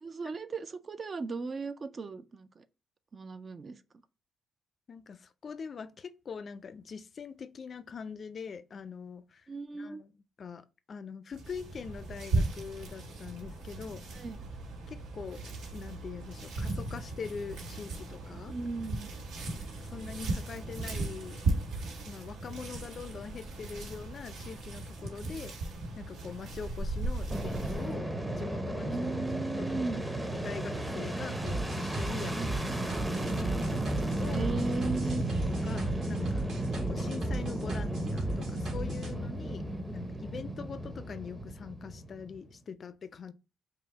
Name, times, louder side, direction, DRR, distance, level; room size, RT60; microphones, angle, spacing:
voice 1, 0.0-2.6 3.1-3.8 9.5-10.0 14.1-14.4 18.5-19.1 28.8-30.0 32.4-32.5 33.8-33.9 34.3-35.2, right 3 dB, 40° right, 0.4 m, -37 dB
voice 2, 4.9-9.5 9.7-10.1 10.4-14.1 14.9-18.6 19.8-21.4 22.1-25.5 26.0-28.9 29.6-29.7 30.2-33.1 34.1-34.5 35.6-36.4 36.7-43.3, left 6 dB, 45° left, 0.4 m, -43 dB
sound 1, 11.3-28.0, right 2 dB, 85° right, 1.3 m, -37 dB
Fixed-wing aircraft airplane, 27.3-42.5, right 1 dB, 15° right, 0.7 m, -34 dB
sound 2, 31.5-39.1, right 2 dB, 60° right, 1.9 m, -37 dB
5.3 x 2.1 x 3.9 m
cardioid pair, 90°, 0 cm